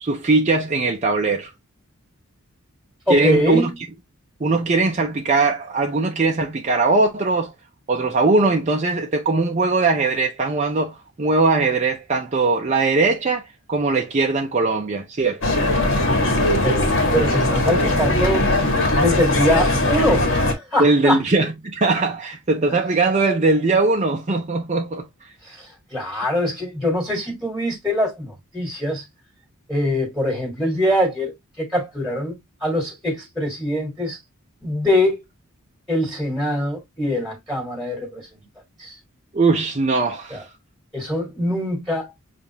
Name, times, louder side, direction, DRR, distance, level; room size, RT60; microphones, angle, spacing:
voice 1, 0.0-1.5 3.1-3.7 4.4-7.5 7.9-15.4 20.8-25.1 39.3-40.5, right 3 dB, 35° right, 0.6 m, -20 dB
voice 2, 3.1-3.7 16.6-18.4 19.0-21.2 25.4-29.0 29.7-34.2 34.6-35.2 35.9-38.4 38.8-39.0 40.3-40.4 40.9-42.2, left 1 dB, ahead, 1.7 m, -23 dB
sound 1, 15.4-20.5, left 1 dB, 60° left, 1.5 m, -19 dB
7.0 x 2.5 x 2.8 m
head